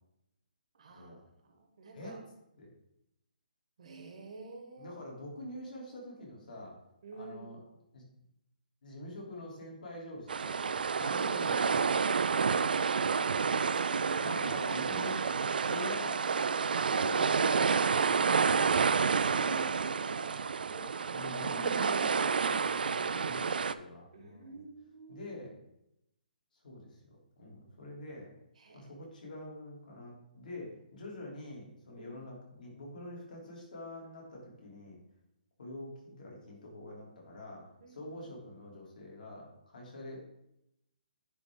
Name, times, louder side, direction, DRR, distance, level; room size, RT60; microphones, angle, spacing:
voice 1, 0.7-1.1 1.4-2.2 3.8-4.9 7.0-7.6 13.4-14.4 19.1-20.3 20.7-20.9 24.1-25.4 28.6-28.9 32.0-32.2 37.8-38.2, right 3 dB, 45° right, 4 dB, 1.1 m, -48 dB
voice 2, 4.8-6.7 7.2-7.6 7.9-8.0 8.8-10.6 11.0-12.3 14.1-16.3 16.8-17.7 18.1-18.8 19.5-19.7 21.1-24.6 25.1-25.5 26.6-28.3 28.7-35.0 35.6-40.3, left 1 dB, 60° left, -3 dB, 2.9 m, -46 dB
sound 1, 10.3-23.7, right 5 dB, 75° right, 0.3 m, -29 dB
9.8 x 3.6 x 3.8 m, 0.82 s
hypercardioid pair, 175°, 5 cm